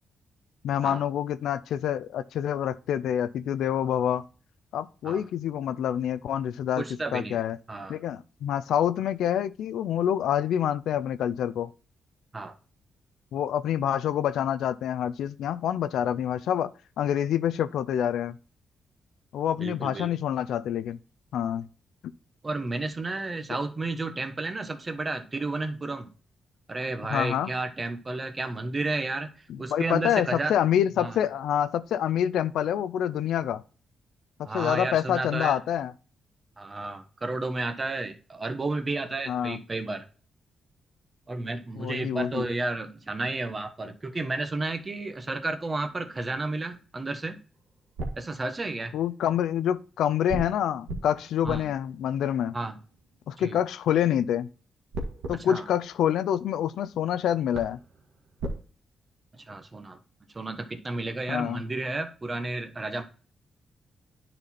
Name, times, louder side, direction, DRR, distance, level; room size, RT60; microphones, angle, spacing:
voice 1, 0.6-4.2 4.7-6.8 7.1-7.6 7.9-11.7 13.3-16.7 17.0-18.4 19.3-21.0 21.3-21.7 27.1-27.5 29.5-33.6 34.4-35.9 39.3-39.6 41.8-42.5 48.9-52.6 53.3-54.5 55.3-57.8 61.3-61.6, left 10 dB, 85° left, 0.4 m, -27 dB
voice 2, 6.8-7.4 7.7-8.0 12.3-12.5 19.6-20.1 22.4-26.1 26.7-29.3 29.6-30.5 31.0-31.2 34.4-35.6 36.6-40.0 41.3-47.4 48.2-48.9 51.4-51.7 52.5-52.8 53.4-53.5 55.5-55.6 59.4-60.0 60.3-63.0, right 2 dB, 30° right, 1.1 m, -32 dB
sound 1, 47.5-49.1 50.3-53.6 54.9-56.8 57.2-57.3 57.5-58.6, right 2 dB, 90° right, 1.7 m, -39 dB
9.9 x 4.2 x 4.2 m
cardioid pair, 75°, 0 cm